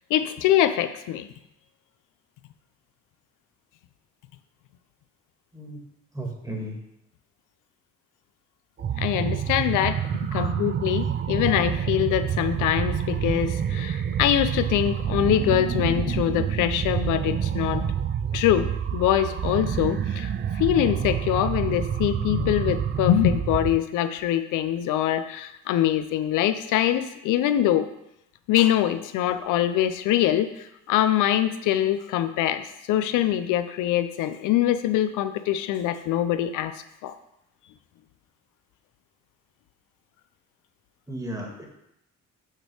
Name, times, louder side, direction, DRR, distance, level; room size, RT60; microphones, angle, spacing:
voice 1, 0.1-1.3 9.0-10.0 10.3-17.8 18.3-18.7 18.9-27.9 28.5-36.7 37.0-37.1, left 11 dB, 90° left, 10 dB, 0.5 m, -24 dB
voice 2, 6.1-6.8 10.3-10.5 41.1-41.6, right 1 dB, 10° right, 0 dB, 1.7 m, -34 dB
sound 1, 8.8-23.8, right 8 dB, 35° right, 0.4 m, -28 dB
6.5 x 3.4 x 6.1 m, 0.83 s
cardioid pair, 90°, 30 cm